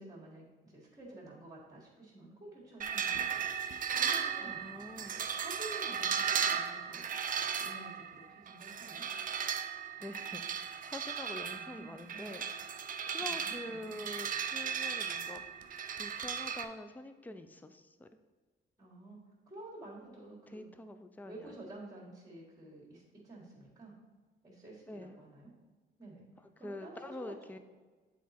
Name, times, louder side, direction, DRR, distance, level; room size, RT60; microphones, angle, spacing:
voice 1, 0.0-3.4 3.9-7.0 7.5-9.1 11.5-12.3 13.2-14.0 18.8-20.7 21.2-23.9 24.4-25.5 26.0-26.3 26.6-27.6, right 2 dB, 20° right, -6 dB, 1.8 m, -51 dB
sound 1, 2.8-16.6, right 7 dB, 45° right, 0.5 m, -36 dB
voice 2, 4.4-5.2 10.0-10.4 10.8-12.4 13.1-15.4 15.9-18.1 20.5-21.7 24.9-25.2 26.6-27.6, left 1 dB, 10° left, 9 dB, 0.4 m, -46 dB
7.2 x 4.1 x 4.3 m, 1.3 s
cardioid pair, 90°, 20 cm